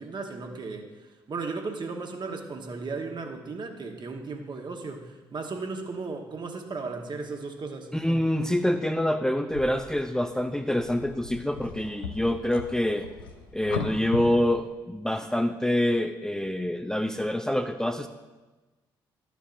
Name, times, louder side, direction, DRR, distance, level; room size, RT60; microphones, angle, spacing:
voice 1, 0.0-7.9, right 4 dB, 40° right, 4 dB, 1.3 m, -36 dB
voice 2, 7.9-13.0 13.5-18.1, left 1 dB, 5° left, 6 dB, 0.5 m, -26 dB
sound 1, 9.5-14.7, left 5 dB, 85° left, 0.6 m, -38 dB
12.5 x 6.9 x 2.6 m, 1.2 s
hypercardioid pair, 45°, 11 cm